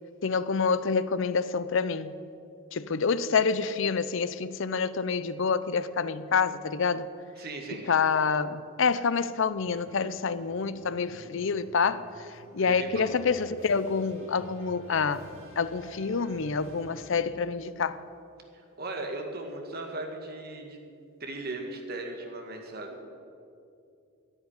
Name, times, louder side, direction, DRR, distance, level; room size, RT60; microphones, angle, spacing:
voice 1, 0.2-2.2 2.7-7.1 7.9-15.3 15.6-18.0, left 5 dB, 60° left, 0.6 m, -27 dB
voice 2, 7.4-7.9 12.6-13.1 18.8-20.8 21.2-23.0, right 2 dB, 45° right, 1.9 m, -37 dB
sound 1, 9.6-17.4, right 1 dB, 75° right, 3.5 m, -51 dB
10.5 x 9.8 x 9.7 m
head